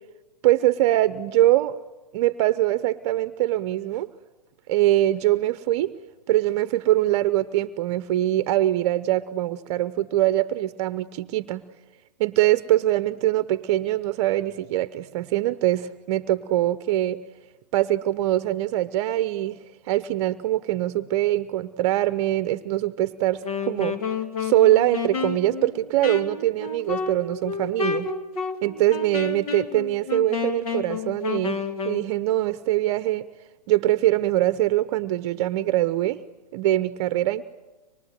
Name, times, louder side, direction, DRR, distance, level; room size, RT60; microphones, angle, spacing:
voice 1, 0.4-1.8 2.1-4.1 4.7-5.9 6.3-11.6 12.2-17.2 17.7-19.6 19.8-24.0 24.4-28.1 28.6-33.3 33.7-36.2 36.5-37.4, right 14 dB, 45° right, 13 dB, 0.8 m, -23 dB
Wind instrument woodwind instrument, 23.3-32.1, left 5 dB, 60° left, 2.5 m, -30 dB
25.0 x 22.0 x 9.2 m, 1.2 s
hypercardioid pair, 125°, 21 cm